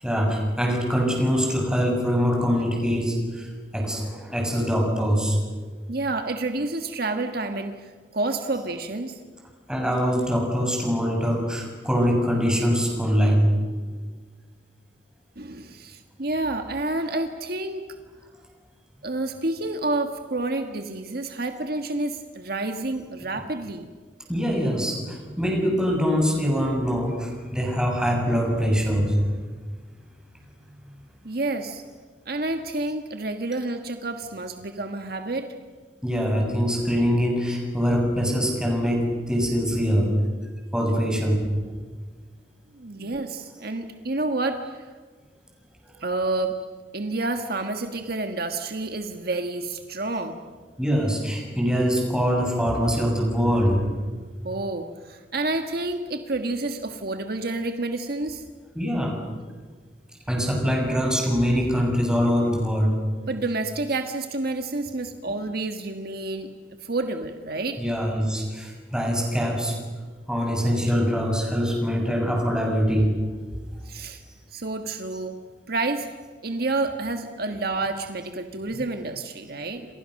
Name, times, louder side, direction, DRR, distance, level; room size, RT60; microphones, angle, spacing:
voice 1, 0.0-5.4 9.7-13.5 13.9-14.0 23.3-23.4 24.3-29.2 36.0-40.1 40.7-41.5 43.0-43.1 50.8-53.8 58.7-59.2 60.3-63.0 65.2-65.3 67.8-69.8 70.3-73.1 77.5-77.6 79.7-79.8, equal, 5° right, 0 dB, 7.2 m, -23 dB
voice 2, 5.9-9.2 15.3-17.8 19.0-23.9 31.2-31.8 32.2-35.5 42.7-44.9 46.0-46.6 46.9-50.4 54.4-58.4 63.3-66.5 66.8-67.8 73.8-74.2 74.5-75.4 75.7-76.1 76.4-79.9, right 2 dB, 60° right, 6 dB, 1.6 m, -29 dB
30.0 x 27.0 x 6.6 m, 1.5 s
head